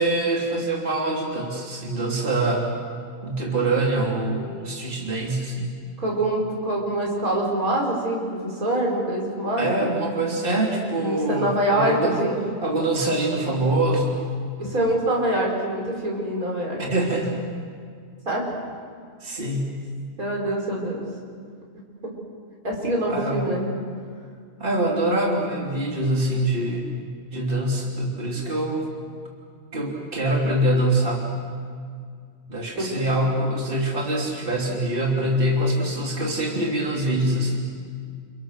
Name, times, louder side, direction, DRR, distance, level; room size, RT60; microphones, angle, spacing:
voice 1, 0.0-2.7 3.2-5.8 9.6-12.2 12.6-14.2 16.8-17.4 19.2-19.7 23.1-23.6 24.6-26.9 27.3-28.9 29.7-31.2 32.5-37.7, right 1 dB, 40° right, -2 dB, 3.5 m, -24 dB
voice 2, 6.0-9.8 11.0-12.4 14.6-16.8 18.3-18.4 20.2-21.0 22.0-22.1 22.6-23.6 32.8-32.9, right 1 dB, 85° right, -2 dB, 6.2 m, -24 dB
29.5 x 29.0 x 6.6 m, 2.1 s
omnidirectional pair, 1.5 m